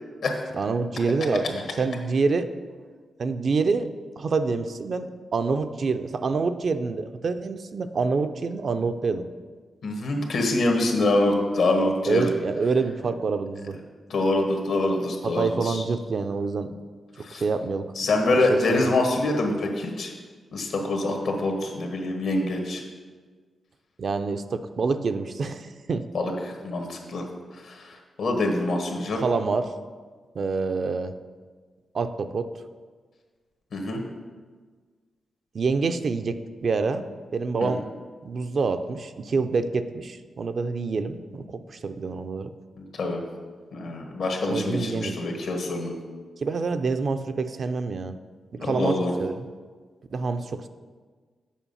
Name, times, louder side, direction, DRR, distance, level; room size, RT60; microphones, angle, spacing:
voice 1, 0.5-2.5 3.2-3.9 4.2-9.2 12.1-13.8 15.2-16.7 17.2-17.9 18.3-18.9 24.0-26.0 29.2-29.7 30.3-31.2 31.9-32.5 35.5-37.9 38.2-42.5 44.5-45.2 46.4-48.2 48.5-49.5 50.1-50.7, right 4 dB, 60° right, 9 dB, 0.5 m, -27 dB
voice 2, 9.8-12.3 14.1-15.8 17.2-17.4 17.9-20.1 20.5-22.8 26.1-27.2 27.5-29.2 33.7-34.0 37.6-37.7 43.0-43.2 43.7-45.9 48.6-49.1, left 2 dB, 75° left, 2 dB, 1.4 m, -25 dB
7.2 x 5.1 x 5.5 m, 1.5 s
cardioid pair, 75°, 0 cm